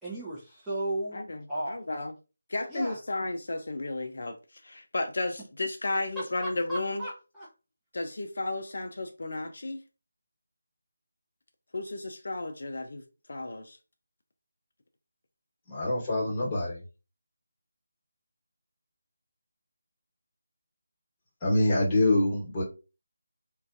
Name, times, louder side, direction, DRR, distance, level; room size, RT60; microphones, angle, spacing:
voice 1, 0.0-1.2 1.5-1.8 2.7-3.0 6.7-7.5, right 1 dB, 5° right, 0.6 m, -34 dB
voice 2, 1.1-2.1 2.5-7.1 7.9-9.8 11.7-13.0 13.3-13.8, left 2 dB, 65° left, 0.4 m, -33 dB
voice 3, 15.7-16.8 21.4-22.6, left 1 dB, 20° left, 1.2 m, -25 dB
2.5 x 2.2 x 2.4 m
figure-of-eight pair, 160°, 0 cm